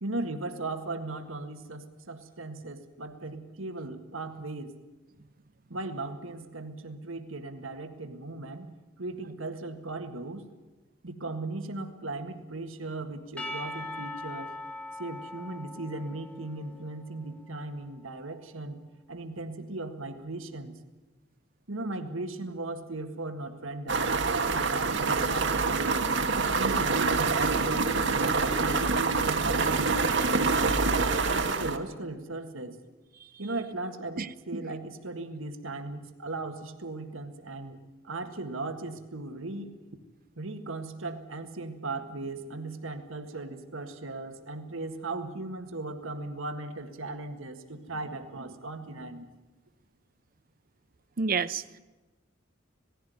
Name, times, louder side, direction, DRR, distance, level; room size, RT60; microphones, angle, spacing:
voice 1, 0.0-4.8 5.7-8.7 9.0-10.5 11.0-14.6 15.0-20.8 21.7-25.9 26.3-30.0 31.2-32.8 33.4-37.8 38.0-39.8 40.4-49.3, right 2 dB, 80° right, 7 dB, 1.7 m, -37 dB
Percussion / Church bell, 13.4-17.7, left 1 dB, 5° left, 1.1 m, -41 dB
sound 1, 23.9-31.8, right 4 dB, 60° right, 1.3 m, -26 dB
voice 2, 51.2-51.8, right 5 dB, 45° right, 16 dB, 0.6 m, -29 dB
19.0 x 15.5 x 9.4 m, 1.2 s
head